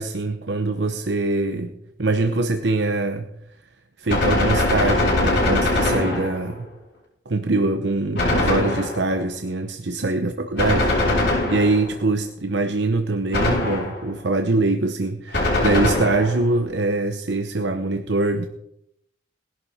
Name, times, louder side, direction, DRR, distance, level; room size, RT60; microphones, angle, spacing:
voice 1, 0.0-3.3 4.0-6.7 7.3-18.5, right 2 dB, 70° right, 6 dB, 0.9 m, -23 dB
Gunshot gunfire, 4.1-6.6 8.2-9.2 10.6-12.0 13.3-14.1 15.3-16.5, left 2 dB, 65° left, 6.9 m, -22 dB
19.5 x 11.5 x 4.3 m, 0.78 s
head